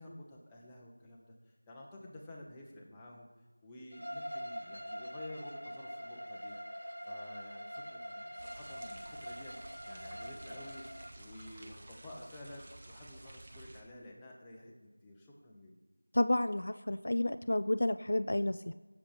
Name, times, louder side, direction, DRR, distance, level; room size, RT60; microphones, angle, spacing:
voice 1, 0.0-3.3 3.6-6.6 7.0-9.6 9.9-10.8 11.1-15.8, left 1 dB, 5° left, -4 dB, 1.0 m, -51 dB
Bowed string instrument, 3.9-11.1, equal, 85° right, 2.7 m, -44 dB
sound 1, 8.4-13.8, right 1 dB, 20° right, 1.1 m, -52 dB
voice 2, 16.1-18.7, left 1 dB, 45° left, 11 dB, 0.4 m, -31 dB
15.5 x 7.2 x 5.1 m, 1.4 s
figure-of-eight pair, 175°, 0 cm